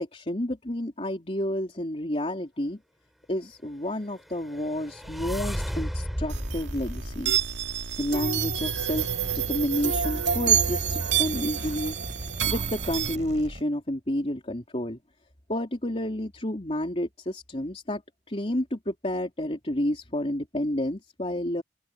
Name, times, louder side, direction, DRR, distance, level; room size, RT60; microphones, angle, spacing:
voice 1, 0.0-2.8 3.3-7.4 8.0-9.1 9.3-15.0 15.5-18.0 18.3-21.6, left 1 dB, 35° left, 3.5 m, -30 dB
sound 1, 4.2-8.4, equal, ahead, 5.4 m, -34 dB
sound 2, 6.3-13.2, right 8 dB, 80° right, 2.1 m, -28 dB
sound 3, 8.2-13.6, right 1 dB, 40° right, 5.6 m, -40 dB
head